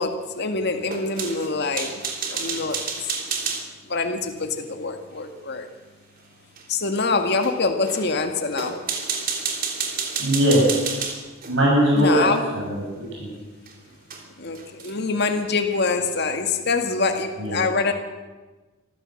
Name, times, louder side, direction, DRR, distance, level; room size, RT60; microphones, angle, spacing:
voice 1, 0.0-2.0 2.3-2.8 3.9-5.7 6.7-8.8 11.9-12.4 14.4-17.9, left 3 dB, 55° left, 5 dB, 2.0 m, -25 dB
sound 1, 0.8-3.7 6.6-6.7 7.4-7.5 7.8-8.1 8.5-11.5 12.3-12.4 13.7-13.8 14.1-14.2 14.5-15.0, right 5 dB, 45° right, 3.3 m, -29 dB
voice 2, 10.2-10.6 11.5-12.8 13.2-13.3 17.4-17.6, equal, 60° right, -3 dB, 7.8 m, -20 dB
25.5 x 15.0 x 7.8 m, 1.2 s
head